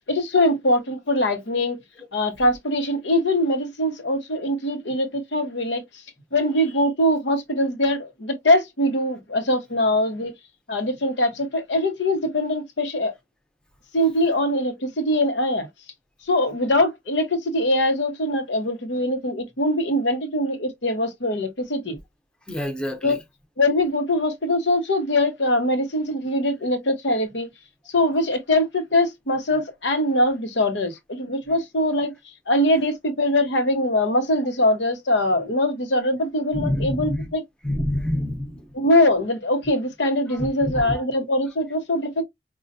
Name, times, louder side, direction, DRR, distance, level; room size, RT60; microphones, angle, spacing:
voice 1, 0.1-1.8 2.1-5.8 6.3-10.3 10.7-13.1 13.9-15.7 16.3-22.0 23.0-23.2 23.6-27.5 27.9-32.1 32.5-37.4 38.7-42.2, left 1 dB, 85° left, 1.0 m, -22 dB
voice 2, 22.5-23.2 36.5-37.3 37.6-38.7 40.3-40.9, left 1 dB, 5° left, 0.7 m, -27 dB
5.2 x 2.4 x 2.6 m
head